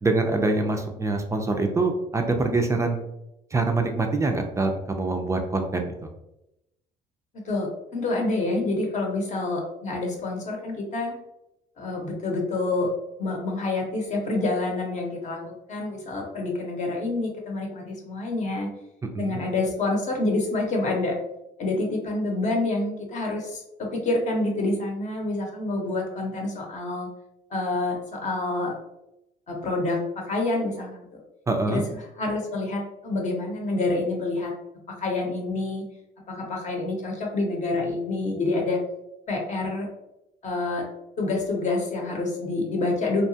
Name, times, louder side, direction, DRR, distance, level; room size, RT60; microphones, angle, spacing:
voice 1, 0.0-3.0 3.5-6.1 19.1-19.4 31.5-31.8, right 3 dB, 15° right, 4 dB, 0.3 m, -25 dB
voice 2, 7.4-11.2 11.8-12.9 13.2-18.7 19.2-21.2 21.6-27.1 27.5-28.7 29.5-31.2 31.7-31.9 32.2-34.5 34.9-35.9 36.3-38.8 39.3-39.9 40.4-40.9 41.2-43.3, left 2 dB, 45° left, 0 dB, 0.8 m, -27 dB
2.8 x 2.2 x 2.7 m, 0.87 s
cardioid pair, 110°, 17 cm